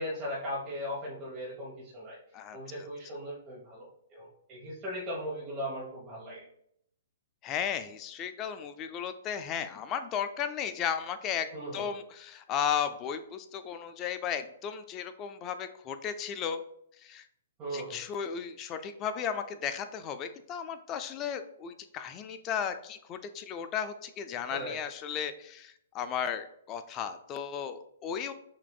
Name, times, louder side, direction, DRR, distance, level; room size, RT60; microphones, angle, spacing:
voice 1, 0.0-2.2 2.5-6.4 11.5-11.9 17.6-18.0 24.5-24.8, equal, 30° right, -6 dB, 1.1 m, -38 dB
voice 2, 7.4-11.5 11.7-16.6 17.0-17.3 17.7-28.3, left 8 dB, 25° left, 9 dB, 0.4 m, -35 dB
5.8 x 2.6 x 2.3 m, 0.70 s
hypercardioid pair, 145°, 0 cm